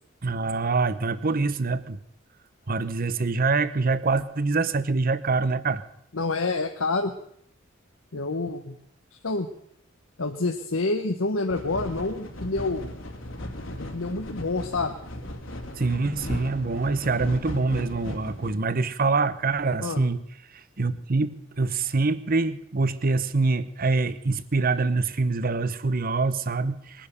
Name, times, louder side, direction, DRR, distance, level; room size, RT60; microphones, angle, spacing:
voice 1, 0.2-2.0 2.7-5.8 15.8-20.2 20.8-27.1, right 3 dB, 45° right, 14 dB, 0.8 m, -25 dB
voice 2, 6.1-7.1 8.1-8.8 9.2-9.5 10.2-12.9 13.8-14.9 19.8-20.0, left 3 dB, 85° left, 5 dB, 1.1 m, -27 dB
sound 1, 11.5-18.5, left 1 dB, 70° left, 2.5 m, -37 dB
21.0 x 10.5 x 6.7 m, 0.71 s
head